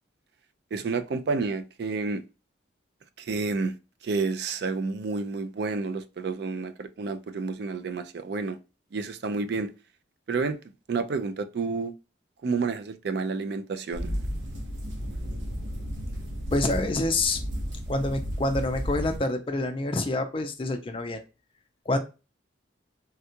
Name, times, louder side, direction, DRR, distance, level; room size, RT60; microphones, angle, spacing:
voice 1, 0.7-2.2 3.2-3.7 4.0-8.6 8.9-9.7 10.3-10.6 10.9-11.9 12.4-14.2, right 4 dB, 60° right, 0.3 m, -30 dB
sound 1, 13.9-19.2, equal, 85° right, 0.9 m, -33 dB
voice 2, 16.5-17.4 17.9-21.2 21.9-22.0, left 2 dB, 30° left, 0.4 m, -27 dB
3.6 x 2.3 x 2.7 m
head